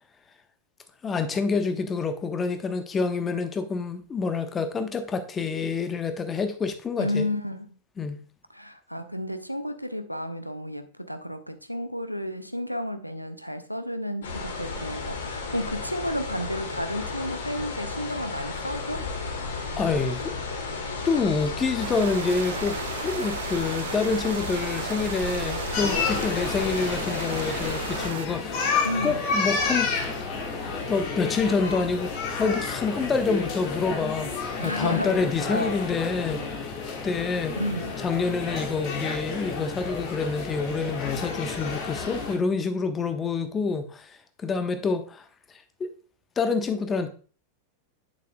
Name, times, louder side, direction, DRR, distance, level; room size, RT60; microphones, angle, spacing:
voice 1, 1.0-7.3 8.0-8.2 19.8-20.3 21.0-22.8 23.0-29.9 30.9-34.3 34.6-36.7 37.0-37.6 38.0-45.2 45.8-45.9 46.4-47.1, left 4 dB, 20° left, 0.8 m, -27 dB
voice 2, 7.0-7.7 8.5-19.1 28.8-29.2 34.6-35.2 35.5-35.8 37.6-38.0, left 1 dB, 90° left, 0.6 m, -32 dB
sound 1, 14.2-28.1, left 4 dB, 60° left, 1.6 m, -33 dB
sound 2, 21.8-28.3, right 13 dB, 55° right, 0.4 m, -36 dB
sound 3, 25.7-42.3, left 4 dB, 40° left, 1.7 m, -31 dB
8.6 x 7.2 x 2.3 m
figure-of-eight pair, 90°, 0 cm